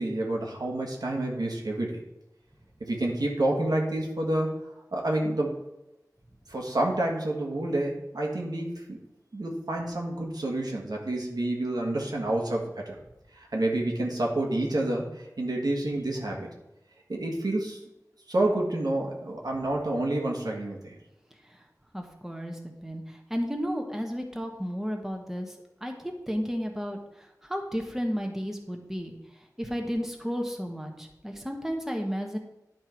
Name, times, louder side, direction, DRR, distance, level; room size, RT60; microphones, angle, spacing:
voice 1, 0.0-2.0 2.8-4.6 4.9-5.6 6.5-9.0 9.3-13.0 13.3-16.5 17.1-17.8 18.3-21.0, right 1 dB, 80° right, -1 dB, 1.6 m, -29 dB
voice 2, 21.9-25.5 25.8-29.1 29.6-32.4, equal, 5° right, 2 dB, 1.2 m, -33 dB
10.5 x 4.5 x 4.5 m, 0.90 s
wide cardioid pair, 50°, 7 cm